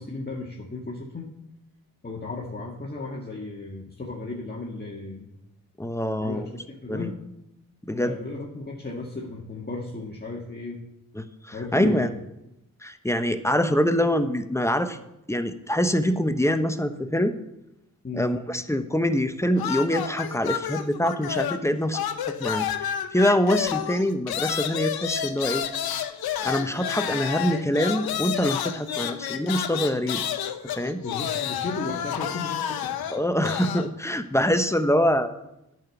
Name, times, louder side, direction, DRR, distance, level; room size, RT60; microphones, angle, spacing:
voice 1, 0.0-1.3 2.0-5.3 6.2-7.2 7.9-10.8 11.5-12.2 18.0-18.3 31.0-33.1, left 3 dB, 25° left, -2 dB, 1.7 m, -35 dB
voice 2, 5.8-6.5 6.9-7.1 7.8-8.2 11.1-12.1 12.8-15.0 15.3-17.3 18.1-25.6 26.4-30.2 30.8-31.0 33.1-35.3, equal, 10° left, 9 dB, 1.0 m, -25 dB
sound 1, 19.6-21.7 21.9-33.9, left 10 dB, 80° left, 0.8 m, -30 dB
9.0 x 6.1 x 7.1 m, 0.87 s
supercardioid pair, 45°, 36 cm